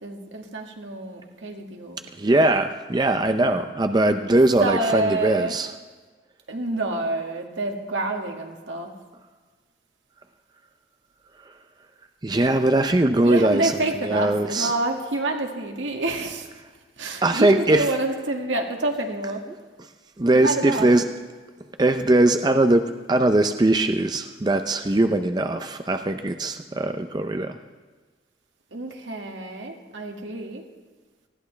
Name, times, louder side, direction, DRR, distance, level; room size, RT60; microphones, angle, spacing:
voice 1, 0.0-2.0 4.6-5.5 6.5-8.9 13.2-16.5 17.0-19.4 20.4-20.9 28.7-30.6, right 2 dB, 85° right, 2 dB, 1.9 m, -28 dB
voice 2, 2.2-5.7 12.2-14.7 17.2-17.9 20.2-21.1 21.8-27.6, right 2 dB, 20° right, 7 dB, 0.5 m, -21 dB
19.5 x 14.0 x 3.3 m, 1.4 s
head